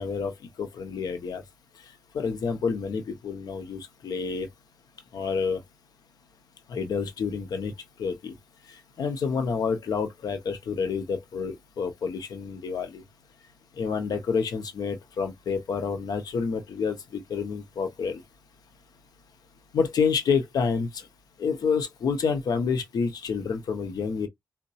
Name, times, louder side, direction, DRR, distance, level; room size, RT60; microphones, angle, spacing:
voice 1, 0.0-1.4 2.1-4.5 5.1-5.6 6.7-7.7 8.0-8.3 8.7-13.0 13.8-18.2 19.7-21.1 21.4-24.3, left 5 dB, 85° left, 0.7 m, -28 dB
3.8 x 2.2 x 2.5 m
wide cardioid pair, 170°, 6 cm